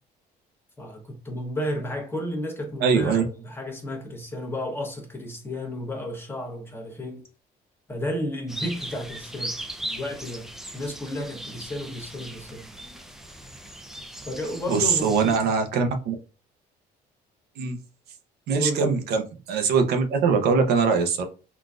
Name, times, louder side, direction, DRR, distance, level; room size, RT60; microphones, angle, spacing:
voice 1, 0.8-7.2 7.9-9.6 9.8-12.7 14.3-15.3 18.5-19.0, left 1 dB, 15° left, 1.0 m, -32 dB
voice 2, 2.8-3.2 14.7-16.1 17.6-17.8 18.5-21.2, right 5 dB, 70° right, 0.6 m, -22 dB
sound 1, 8.5-15.4, right 1 dB, ahead, 0.5 m, -38 dB
3.8 x 2.3 x 2.4 m
cardioid pair, 110°, 17 cm